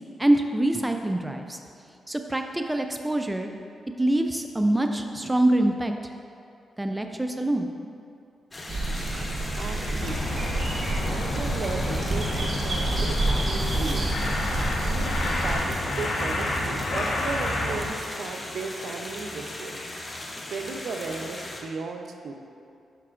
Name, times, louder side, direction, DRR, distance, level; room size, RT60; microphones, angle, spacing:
voice 1, 0.2-1.6 2.1-3.5 4.0-6.1 6.8-7.7, right 1 dB, 15° right, 4 dB, 0.4 m, -25 dB
sound 1, 8.5-21.6, left 1 dB, 30° left, 0.9 m, -38 dB
sound 2, 8.7-15.5, right 2 dB, 50° right, 1.1 m, -28 dB
voice 2, 9.6-10.4 11.0-14.1 14.8-19.8 20.5-22.3, right 4 dB, 75° right, 4 dB, 0.5 m, -36 dB
sound 3, 10.0-17.9, left 1 dB, 70° left, 1.1 m, -30 dB
9.0 x 5.8 x 2.5 m, 2.5 s
cardioid pair, 65°, 0 cm